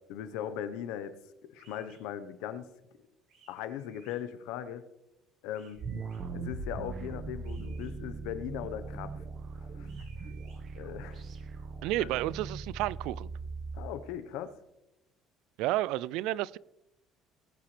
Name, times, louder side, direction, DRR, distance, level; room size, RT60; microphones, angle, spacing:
voice 1, 0.1-1.2 1.5-2.7 3.5-4.8 5.4-5.8 6.3-9.1 9.6-9.9 10.2-10.3 10.8-11.2 12.0-12.1 13.7-14.5, left 10 dB, 85° left, 1.0 m, -39 dB
sound 1, 1.6-2.0 3.3-4.2 5.5-6.2 7.4-7.9 9.8-10.6, right 5 dB, 60° right, 4.6 m, -61 dB
sound 2, 5.7-13.9, right 4 dB, 40° right, 1.4 m, -40 dB
voice 2, 11.8-13.3 15.6-16.6, right 16 dB, 80° right, 0.3 m, -31 dB
19.5 x 8.9 x 3.3 m
cardioid pair, 155°, 0 cm